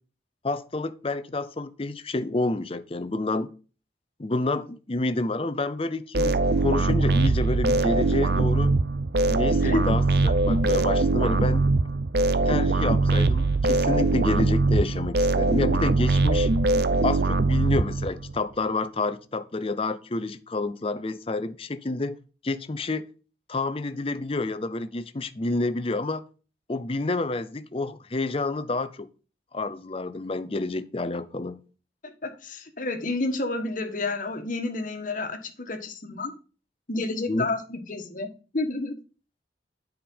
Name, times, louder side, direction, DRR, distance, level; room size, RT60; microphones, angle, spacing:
voice 1, 0.4-3.5 4.2-8.8 9.3-11.7 12.5-16.5 17.0-22.2 22.4-23.1 23.5-26.3 26.7-29.1 29.5-31.6 37.3-37.5, left 2 dB, 30° left, 0.6 m, -29 dB
sound 1, 6.1-18.4, right 3 dB, 60° right, 0.6 m, -22 dB
voice 2, 32.0-36.3 36.9-38.9, left 2 dB, 45° left, 1.4 m, -30 dB
8.8 x 5.1 x 5.3 m
head